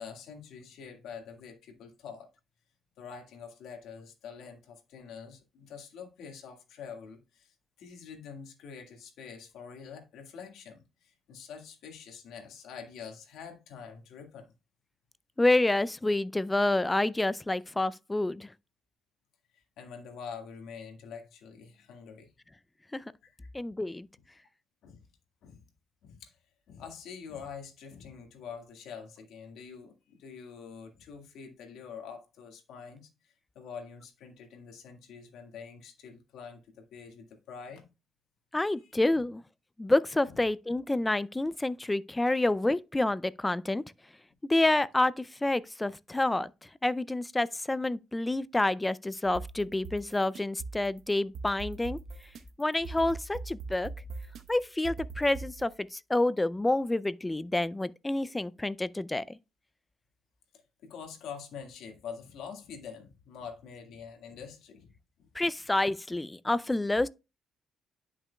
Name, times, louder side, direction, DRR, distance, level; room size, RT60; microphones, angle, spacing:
voice 1, 0.0-2.3 3.0-14.5 19.5-22.3 23.2-23.5 24.8-25.0 25.4-25.6 26.0-26.4 26.7-37.8 38.8-38.9 40.3-40.4 60.8-64.9 65.2-65.3, left 6 dB, 85° left, 1.7 m, -46 dB
voice 2, 15.4-18.5 22.9-23.0 23.5-24.1 38.5-39.4 39.8-43.8 44.5-46.5 46.8-52.0 52.6-53.9 54.5-59.4 65.4-67.1, left 2 dB, 15° left, 0.4 m, -28 dB
sound 1, 49.2-55.8, right 4 dB, 70° right, 0.9 m, -42 dB
10.5 x 5.9 x 2.3 m
cardioid pair, 90°, 0 cm